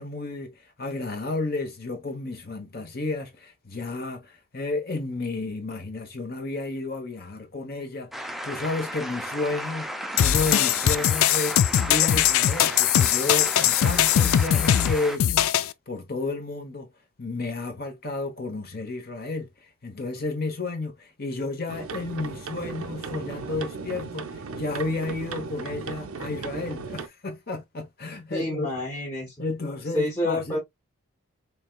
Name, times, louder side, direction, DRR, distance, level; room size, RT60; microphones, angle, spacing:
voice 1, 0.0-9.9 10.2-11.6 11.9-15.5 15.9-16.9 17.2-28.7 29.4-30.6, left 3 dB, 45° left, 0.9 m, -32 dB
sound 1, 8.1-15.2, equal, ahead, 0.4 m, -34 dB
sound 2, 10.2-15.7, left 11 dB, 75° left, 0.3 m, -21 dB
sound 3, 21.7-27.1, right 4 dB, 75° right, 0.6 m, -36 dB
voice 2, 28.3-29.5 29.9-30.6, left 1 dB, 20° left, 1.1 m, -28 dB
4.5 x 3.3 x 2.2 m
head